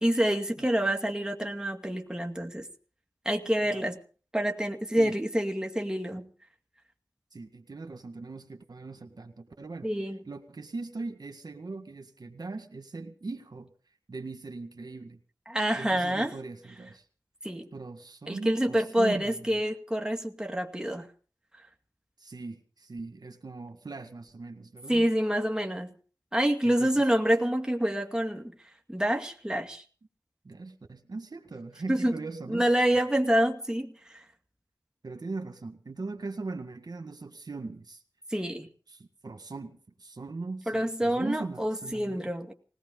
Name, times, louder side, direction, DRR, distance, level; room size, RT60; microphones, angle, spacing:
voice 1, 0.0-2.7 3.3-4.0 4.3-6.3 9.8-10.2 15.5-16.4 17.4-17.7 18.3-21.1 24.9-25.9 26.3-28.5 28.9-29.8 31.9-32.1 32.5-34.2 38.3-38.7 40.7-42.5, right 1 dB, 10° right, 2.3 m, -27 dB
voice 2, 7.3-9.9 10.2-13.7 14.1-15.2 15.7-17.0 17.7-19.6 22.2-25.1 26.6-27.1 30.4-32.6 35.0-38.0 38.9-42.3, right 3 dB, 75° right, 1.8 m, -40 dB
20.0 x 18.5 x 3.9 m
wide cardioid pair, 45°, 7 cm